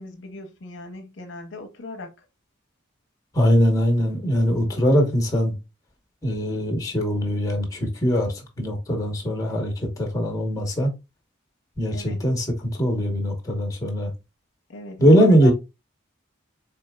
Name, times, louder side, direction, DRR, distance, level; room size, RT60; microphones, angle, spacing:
voice 1, 0.0-2.3 11.9-12.2 14.7-15.5, left 2 dB, 65° left, 0.7 m, -38 dB
voice 2, 3.3-5.5 6.2-10.9 11.8-14.1 15.0-15.5, equal, 15° left, 1.0 m, -21 dB
4.2 x 3.5 x 2.2 m
head